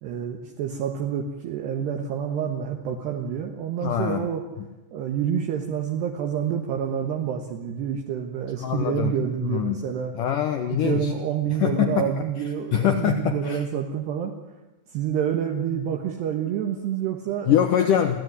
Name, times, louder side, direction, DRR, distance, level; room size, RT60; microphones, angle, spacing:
voice 1, 0.0-4.4 4.9-10.1 10.6-14.3 14.9-17.6, right 8 dB, 70° right, 3 dB, 3.3 m, -28 dB
voice 2, 3.8-4.2 8.6-9.1 9.4-9.8 10.2-11.1 11.6-12.1 12.7-13.6 17.5-18.2, left 9 dB, 90° left, 8 dB, 1.8 m, -23 dB
23.0 x 15.5 x 9.5 m, 1.1 s
omnidirectional pair, 5.4 m